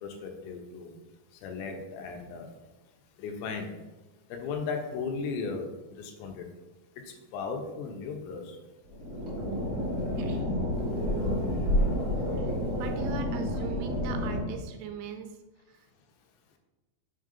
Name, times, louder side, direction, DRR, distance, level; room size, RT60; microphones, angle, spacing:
voice 1, 0.0-0.9 1.4-2.5 3.2-3.7 4.3-6.5 7.1-8.6, left 4 dB, 90° left, 4 dB, 3.0 m, -36 dB
sound 1, 8.9-14.4, left 1 dB, 60° right, 0.9 m, -29 dB
voice 2, 10.2-10.5 12.2-15.4 15.7-15.9, right 7 dB, 80° right, 5 dB, 2.7 m, -41 dB
6.4 x 3.7 x 5.1 m, 1.2 s
omnidirectional pair, 5.2 m